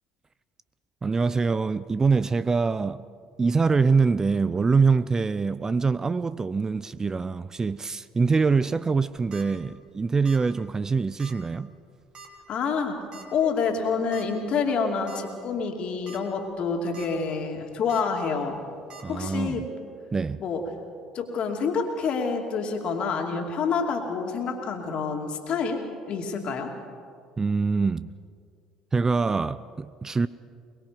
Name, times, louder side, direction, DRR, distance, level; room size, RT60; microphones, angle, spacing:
voice 1, 1.0-3.0 3.4-11.7 19.0-19.7 20.1-20.4 27.4-28.1 28.9-30.3, right 4 dB, 25° right, 0.5 m, -24 dB
sound 1, 9.1-9.4 10.2-10.5 10.8-10.9 11.2-11.3 12.1-12.4 13.1-13.2 14.1-14.3 14.7-14.8 15.1-15.2 15.9-16.2 16.6-17.1 17.9-18.0 18.9-19.0, right 6 dB, 45° right, 2.8 m, -45 dB
voice 2, 12.5-13.0 13.3-18.6 19.1-19.7 20.4-20.6 21.1-26.7, left 5 dB, 50° left, 2.6 m, -28 dB
22.5 x 21.5 x 5.2 m
figure-of-eight pair, 60°, 2 cm